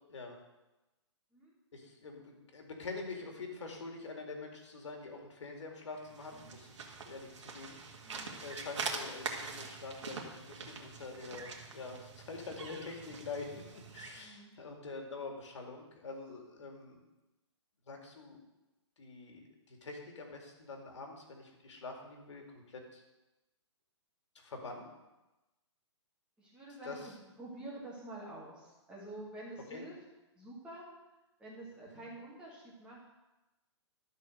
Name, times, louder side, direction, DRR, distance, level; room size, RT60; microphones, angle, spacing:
voice 1, 1.7-17.0 17.9-18.4 19.0-23.0 24.3-24.9 26.8-27.1 29.7-29.8 31.9-32.0, left 3 dB, 75° left, 2 dB, 2.3 m, -46 dB
sound 1, 6.0-14.3, right 4 dB, 85° right, 1.8 m, -44 dB
voice 2, 8.0-8.4 14.1-14.5 26.4-30.0 30.4-30.9 31.4-33.2, right 2 dB, 5° right, -6 dB, 1.7 m, -48 dB
12.5 x 4.3 x 6.5 m, 1.0 s
hypercardioid pair, 170°, 15 cm